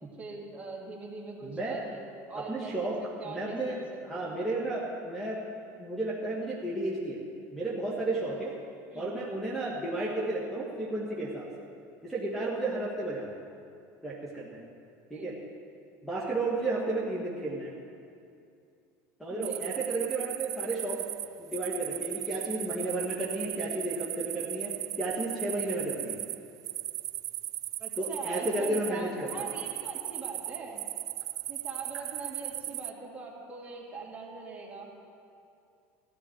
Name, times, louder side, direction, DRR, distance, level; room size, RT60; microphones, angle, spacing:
voice 1, 0.2-2.0 2.3-2.9 3.2-4.3 8.9-9.1 15.1-15.3 19.3-19.6 27.8-30.8 31.5-34.9, right 3 dB, 20° right, -4 dB, 3.0 m, -42 dB
voice 2, 1.4-1.8 2.4-3.0 3.2-3.8 4.1-5.4 5.8-7.2 7.5-8.5 8.9-11.4 12.0-13.4 14.0-14.6 15.1-15.3 16.0-17.7 19.2-21.0 21.4-26.2 28.0-29.5, right 2 dB, ahead, -5 dB, 2.0 m, -33 dB
sound 1, 19.4-32.9, right 14 dB, 50° right, 0.4 m, -37 dB
15.5 x 12.0 x 4.7 m, 2.5 s
supercardioid pair, 115°, 8 cm